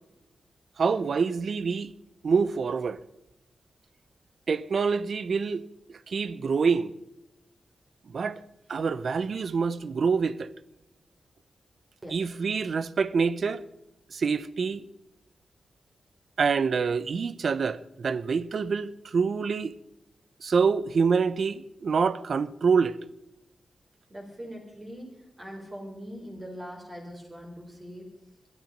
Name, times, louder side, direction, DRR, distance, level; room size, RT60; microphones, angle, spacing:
voice 1, 0.8-1.9 2.2-3.0 4.5-6.9 8.1-8.4 8.7-10.5 12.1-13.7 14.1-14.8 16.4-19.7 20.4-23.0, right 5 dB, 65° right, 0.7 m, -26 dB
voice 2, 24.1-28.1, equal, 30° right, 4.0 m, -42 dB
21.5 x 12.0 x 5.3 m
wide cardioid pair, 90°, 0 cm